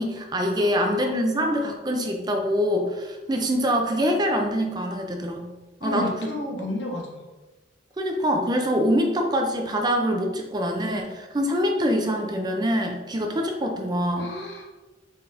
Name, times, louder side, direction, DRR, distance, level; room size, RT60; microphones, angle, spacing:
voice 1, 0.0-5.5 5.8-6.3 8.0-14.3, equal, 20° right, 3 dB, 0.4 m, -24 dB
voice 2, 5.8-7.2 14.2-14.7, left 1 dB, 65° left, 0 dB, 0.9 m, -32 dB
4.1 x 3.8 x 2.5 m, 1.2 s
head